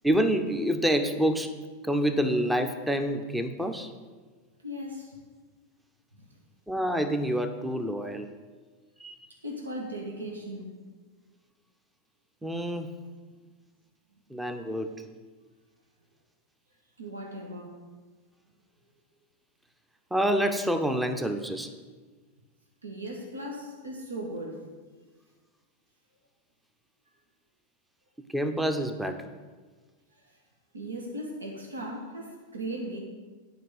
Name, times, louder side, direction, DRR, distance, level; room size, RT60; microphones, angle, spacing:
voice 1, 0.0-1.5 1.8-3.9 6.7-8.3 9.0-9.2 12.4-12.9 14.3-14.9 20.1-21.7 28.3-29.2, equal, 5° right, 8 dB, 0.8 m, -27 dB
voice 2, 4.6-5.2 6.2-6.3 9.4-10.7 17.0-17.8 22.8-24.7 30.2-30.3 30.7-33.0, right 1 dB, 75° right, 0 dB, 1.5 m, -37 dB
9.1 x 5.4 x 8.1 m, 1.4 s
figure-of-eight pair, 90°, 0 cm